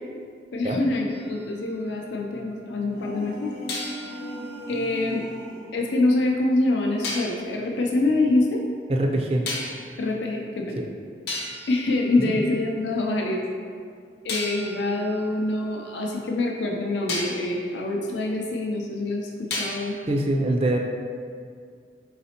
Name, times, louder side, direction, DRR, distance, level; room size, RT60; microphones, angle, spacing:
voice 1, 0.5-3.5 4.7-5.2 5.7-8.6 10.0-10.8 11.7-13.4 14.2-19.9, left 2 dB, 90° left, 0 dB, 0.4 m, -25 dB
sound 1, 1.1-2.5 3.7-5.8 7.0-7.4 9.5-10.0 10.8-10.9 11.3-12.9 14.3-16.5 17.1-17.5 19.5-20.1, left 2 dB, 70° left, 0.8 m, -36 dB
sound 2, 2.8-5.8, equal, 85° right, 1.0 m, -37 dB
voice 2, 8.9-9.4 10.8-10.9 12.3-12.4 20.1-20.8, right 1 dB, 35° right, 2 dB, 0.3 m, -23 dB
4.0 x 4.0 x 2.8 m, 2.2 s
head